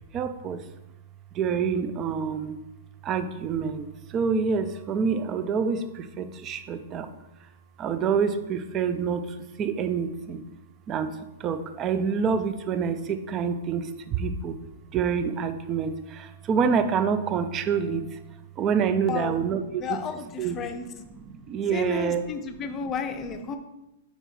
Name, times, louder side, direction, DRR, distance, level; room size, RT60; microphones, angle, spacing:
voice 1, 0.1-0.6 1.3-2.6 3.0-7.1 7.8-10.4 10.9-11.1 11.4-14.6 14.9-18.2 18.6-20.0 20.4-20.6 21.2-22.2, right 6 dB, 30° right, 10 dB, 0.4 m, -27 dB
voice 2, 19.8-20.8 21.7-23.6, left 6 dB, 25° left, 6 dB, 0.6 m, -32 dB
5.6 x 4.6 x 4.2 m, 0.95 s
hypercardioid pair, 145°, 0 cm